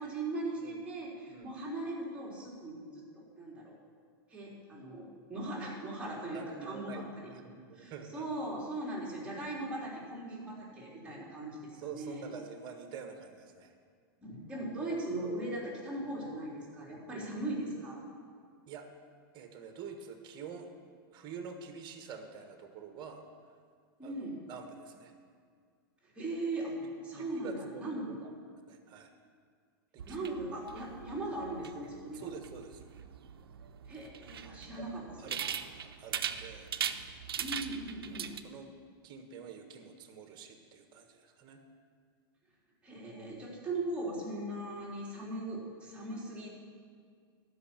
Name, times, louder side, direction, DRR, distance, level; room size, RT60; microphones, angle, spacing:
voice 1, 0.0-3.8 4.3-7.0 7.7-12.3 14.2-18.0 24.0-24.4 26.0-26.8 27.0-28.1 30.1-32.3 33.9-35.5 37.4-38.3 42.8-46.5, right 2 dB, 10° right, -6 dB, 3.5 m, -39 dB
voice 2, 6.3-8.3 11.0-11.3 11.8-13.7 18.7-18.8 19.3-20.8 21.1-23.2 24.0-25.1 26.8-28.3 28.7-29.1 29.9-30.4 32.1-32.8 34.5-34.8 35.2-36.7 38.1-38.7 39.0-41.6, right 6 dB, 35° right, 6 dB, 1.4 m, -47 dB
sound 1, 30.0-38.4, right 8 dB, 90° right, 0.6 m, -40 dB
12.5 x 5.6 x 8.9 m, 2.1 s
hypercardioid pair, 120°, 12 cm